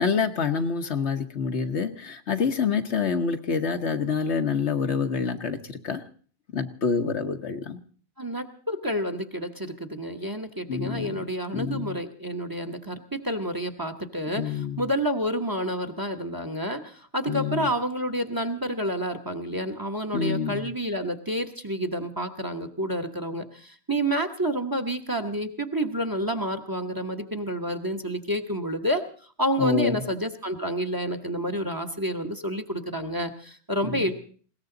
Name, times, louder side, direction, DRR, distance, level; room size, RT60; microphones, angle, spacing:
voice 1, 0.0-6.0 6.5-7.8 10.7-11.2 11.5-12.0 14.3-14.9 17.3-17.7 20.1-20.7 29.6-30.0 33.8-34.1, left 5 dB, 75° left, 6 dB, 1.5 m, -27 dB
voice 2, 8.2-29.0 29.4-34.1, equal, 20° right, 8 dB, 1.2 m, -29 dB
20.5 x 17.5 x 3.9 m, 0.43 s
omnidirectional pair, 1.2 m